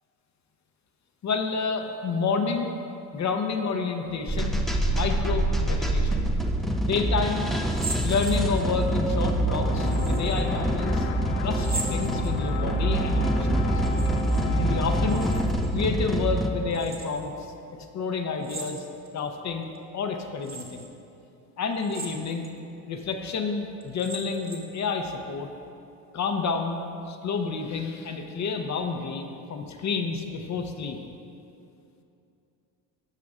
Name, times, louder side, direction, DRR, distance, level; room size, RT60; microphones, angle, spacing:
voice 1, 1.2-2.7 3.1-6.3 6.8-7.5 8.0-11.1 11.4-13.7 14.6-15.3 15.7-18.9 19.1-20.9 21.6-22.5 22.9-25.5 26.1-31.0, left 5 dB, 40° left, 5 dB, 0.7 m, -29 dB
sound 1, 4.3-16.5, right 1 dB, ahead, 0.6 m, -25 dB
sound 2, 7.6-8.9 9.9-10.5 11.5-12.7 13.7-14.5 14.7-15.7 16.7-17.3 18.4-19.2 19.7-19.8 20.4-20.9 21.8-22.5 23.0-23.1 23.8-24.8, right 3 dB, 20° right, 1.3 m, -39 dB
sound 3, 9.6-15.4, left 5 dB, 85° left, 0.7 m, -35 dB
15.0 x 5.8 x 2.4 m, 2.7 s
supercardioid pair, 75°, 45 cm